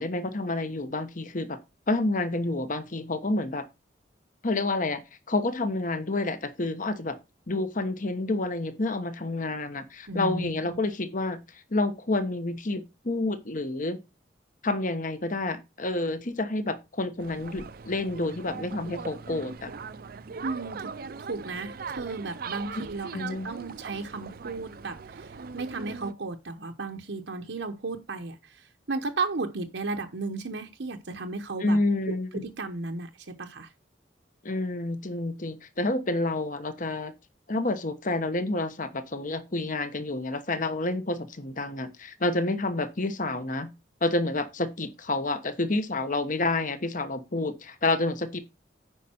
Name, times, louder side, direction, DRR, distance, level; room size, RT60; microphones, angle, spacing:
voice 1, 0.0-1.6 1.9-3.6 4.4-5.0 5.3-7.2 7.5-11.4 11.7-14.0 14.6-19.7 23.1-23.5 31.6-32.5 34.4-37.1 37.5-43.7 44.0-48.4, left 2 dB, 45° left, 1.1 m, -29 dB
voice 2, 10.1-10.8 20.4-20.9 21.2-31.8 32.1-33.7, right 3 dB, 80° right, 1.0 m, -34 dB
sound 1, 17.2-26.1, right 5 dB, 55° right, 0.5 m, -40 dB
9.2 x 5.3 x 4.4 m
head